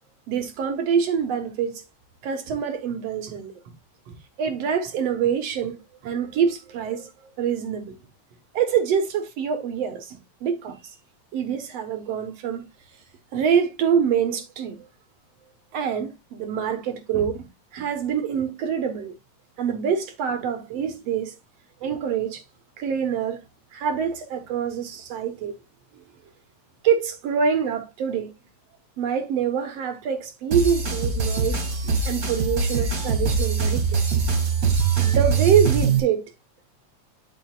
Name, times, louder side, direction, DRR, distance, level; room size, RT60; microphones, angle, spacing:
voice 1, 0.3-1.8 2.2-3.7 4.1-5.8 6.0-7.1 7.4-7.9 8.5-10.8 11.3-12.7 13.3-14.9 15.7-17.5 17.7-19.2 19.6-21.4 21.8-22.4 22.8-23.4 23.7-25.5 26.8-28.3 29.0-31.7 32.1-34.2 35.0-36.2, right 7 dB, 65° right, 2.0 m, -25 dB
sound 1, 30.5-36.0, right 5 dB, 30° right, 2.1 m, -22 dB
11.0 x 5.2 x 2.4 m
omnidirectional pair, 3.5 m